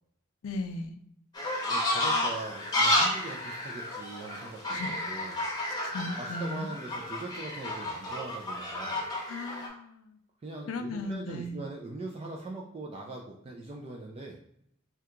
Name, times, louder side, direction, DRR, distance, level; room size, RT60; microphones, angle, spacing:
voice 1, 0.4-1.0 4.7-5.0 5.8-6.7 9.3-10.2 10.7-11.6, left 2 dB, 75° left, 8 dB, 0.4 m, -37 dB
sound 1, 1.3-9.7, left 1 dB, 20° left, 0.8 m, -31 dB
voice 2, 1.7-4.8 5.1-5.3 6.0-9.0 10.4-14.4, right 2 dB, 30° right, 0 dB, 0.3 m, -41 dB
2.8 x 2.2 x 3.6 m, 0.71 s
head